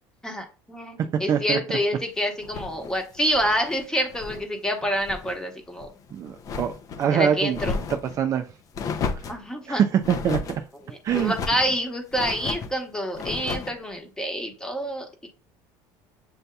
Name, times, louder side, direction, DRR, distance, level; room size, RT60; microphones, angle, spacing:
voice 1, 0.2-5.9 7.1-7.9 9.3-9.8 10.9-15.3, equal, 10° left, 1.0 m, -27 dB
voice 2, 1.3-1.6 6.1-7.6 7.9-8.4 9.7-10.4 11.0-11.3, right 8 dB, 40° right, 0.4 m, -23 dB
sound 1, 2.4-4.5 4.8-5.4 5.7-7.1 7.5-8.2 8.7-9.4 10.0-10.6 11.1-11.7 12.1-12.7 13.1-13.8, left 5 dB, 40° left, 0.5 m, -33 dB
7.6 x 2.7 x 2.3 m
cardioid pair, 125°, 9 cm